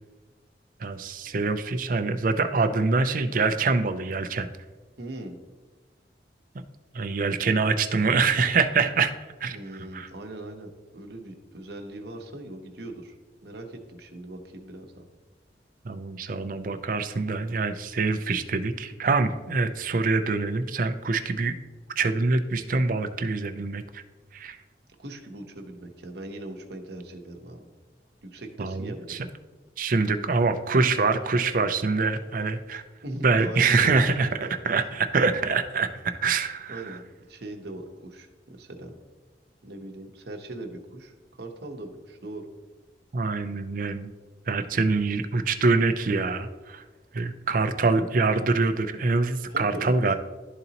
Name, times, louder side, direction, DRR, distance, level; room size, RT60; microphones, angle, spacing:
voice 1, 0.8-4.5 6.9-9.1 9.4-9.6 9.9-10.1 15.8-21.5 22.0-24.0 24.3-24.6 28.6-29.3 29.8-32.8 33.2-34.3 34.6-37.0 43.1-44.1 44.5-46.8 47.1-50.1, right 4 dB, 50° right, 9 dB, 0.5 m, -25 dB
voice 2, 5.0-5.4 9.5-13.1 13.4-15.0 25.0-27.7 28.2-29.2 33.0-34.1 34.8-34.9 36.7-37.0 37.3-39.0 39.6-42.5 49.5-49.9, right 1 dB, 65° right, 3 dB, 0.9 m, -40 dB
12.0 x 4.0 x 2.9 m, 1.3 s
head